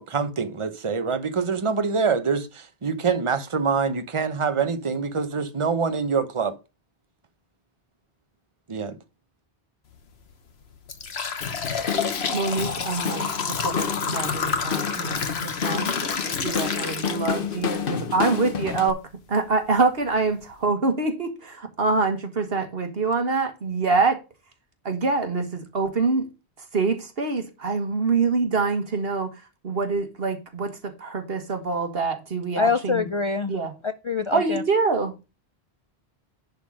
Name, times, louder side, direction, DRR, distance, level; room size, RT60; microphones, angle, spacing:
voice 1, 0.0-6.5 8.7-9.0, right 5 dB, 30° right, 0.9 m, -25 dB
sound 1, 9.9-10.1 10.6-17.8 18.2-18.3 19.2-19.3 19.8-19.9 20.3-20.5, left 6 dB, 75° left, 1.4 m, -29 dB
Drum kit / Drum, 11.4-18.9, left 6 dB, 60° left, 1.0 m, -31 dB
voice 2, 12.3-15.9 16.4-19.0 19.3-24.2 24.9-26.3 26.7-29.3 29.6-33.1 33.5-33.7 34.3-35.2, right 4 dB, 65° right, 1.8 m, -25 dB
voice 3, 32.6-33.5 33.8-34.6, left 5 dB, 45° left, 0.4 m, -25 dB
10.5 x 3.9 x 6.3 m
omnidirectional pair, 1.1 m